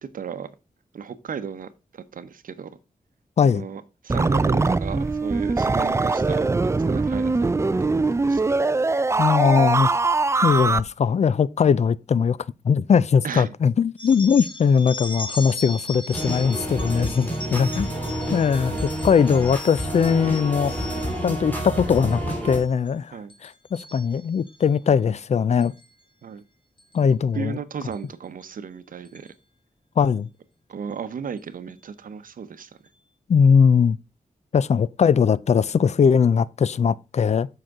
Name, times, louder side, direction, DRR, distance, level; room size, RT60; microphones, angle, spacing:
voice 1, 0.0-0.5 0.9-2.7 3.4-8.0 8.3-8.5 13.2-13.5 18.7-18.8 23.1-23.3 26.2-26.4 27.3-29.3 30.7-32.7, right 7 dB, 75° right, 0.8 m, -35 dB
sound 1, 4.1-10.8, right 3 dB, 20° right, 0.4 m, -22 dB
voice 2, 9.2-9.9 10.4-12.4 12.6-17.9 18.3-20.9 21.2-25.7 26.9-27.6 30.0-30.3 33.3-34.0 34.5-37.5, left 6 dB, 55° left, 0.4 m, -20 dB
sound 2, 14.0-21.3 21.8-22.2 22.5-22.9 23.3-24.6 25.6-25.8 26.8-27.0 27.9-28.0 28.4-28.5 29.0-29.3, left 2 dB, 35° left, 1.6 m, -38 dB
sound 3, 16.1-22.6, equal, 10° left, 2.9 m, -29 dB
7.7 x 5.8 x 3.6 m
cardioid pair, 75°, 14 cm